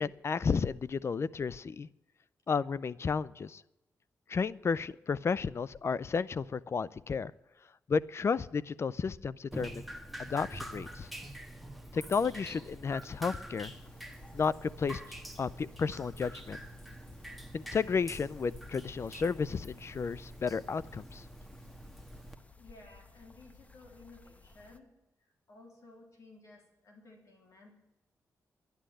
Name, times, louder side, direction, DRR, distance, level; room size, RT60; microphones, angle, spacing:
voice 1, 0.0-1.9 2.5-3.6 4.3-7.3 7.9-9.8 10.2-11.1 11.9-13.7 14.3-15.0 15.4-16.6 17.5-21.2, left 5 dB, 45° left, 20 dB, 0.5 m, -32 dB
Drip, 9.5-22.4, right 1 dB, ahead, 1.4 m, -46 dB
sound 1, 13.6-24.8, left 3 dB, 25° left, 1.1 m, -56 dB
voice 2, 22.6-24.9 25.5-27.8, left 2 dB, 60° left, 1 dB, 3.3 m, -56 dB
11.5 x 10.5 x 7.8 m, 0.93 s
cardioid pair, 80°, 6 cm